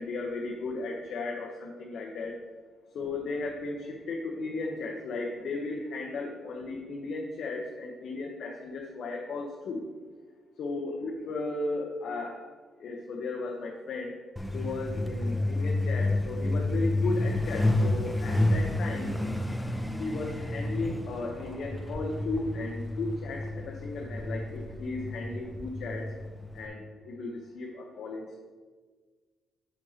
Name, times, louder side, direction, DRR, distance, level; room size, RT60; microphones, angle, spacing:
voice 1, 0.0-2.4 2.9-9.8 10.6-12.4 12.8-14.2 14.5-19.2 20.0-26.1 26.5-28.4, left 3 dB, 65° left, 0 dB, 0.9 m, -35 dB
Truck, 14.4-26.7, left 1 dB, 5° left, 0.6 m, -30 dB
7.9 x 7.2 x 2.9 m, 1.4 s
cardioid pair, 90°, 0 cm